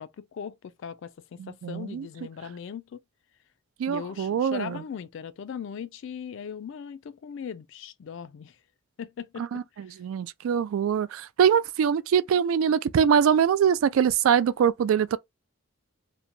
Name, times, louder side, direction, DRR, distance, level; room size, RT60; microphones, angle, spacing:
voice 1, 0.0-3.0 3.9-8.6 9.0-10.0, left 7 dB, 60° left, 0.3 m, -39 dB
voice 2, 1.4-2.1 3.8-4.8 9.4-9.6 10.0-15.2, right 8 dB, 80° right, 0.3 m, -23 dB
2.9 x 2.1 x 2.5 m
head